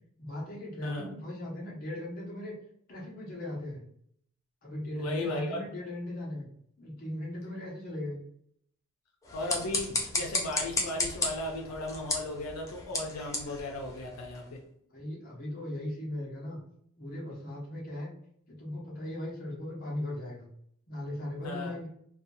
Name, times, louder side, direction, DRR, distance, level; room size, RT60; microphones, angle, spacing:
voice 1, 0.2-2.5 2.9-3.8 4.6-6.5 6.8-8.2 14.9-16.6 17.0-18.1 18.5-20.5 20.9-21.9, left 1 dB, 40° left, -4 dB, 0.8 m, -38 dB
voice 2, 4.9-5.6 9.3-14.6 21.4-21.7, left 2 dB, 90° left, 1 dB, 0.5 m, -36 dB
sound 1, 9.2-14.5, left 2 dB, 15° left, 0.4 m, -34 dB
2.6 x 2.3 x 2.6 m, 0.68 s
head